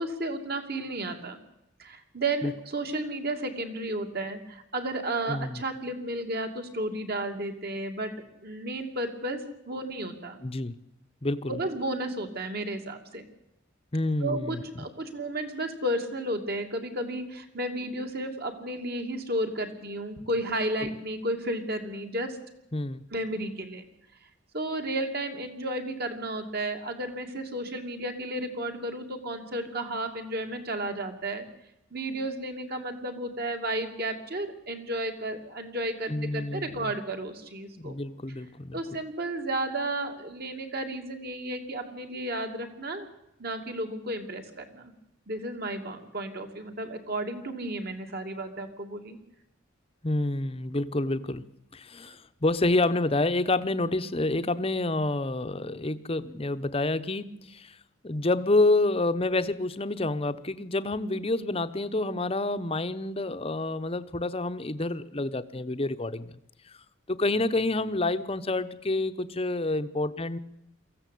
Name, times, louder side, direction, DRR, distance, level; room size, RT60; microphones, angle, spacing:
voice 1, 0.0-1.4 1.8-8.1 8.4-9.4 9.7-10.4 11.5-13.3 14.2-22.4 23.1-23.8 24.5-31.5 31.9-38.0 38.7-43.1 43.4-44.9 45.3-49.2 52.0-52.1, right 1 dB, 45° right, 5 dB, 2.6 m, -33 dB
voice 2, 5.3-5.6 10.4-10.7 11.2-11.6 13.9-14.6 22.7-23.0 36.1-36.9 37.8-38.8 50.0-51.4 51.7-57.8 58.0-66.3 67.1-70.4, left 2 dB, 25° left, 11 dB, 0.9 m, -28 dB
23.0 x 15.0 x 8.4 m, 0.85 s
head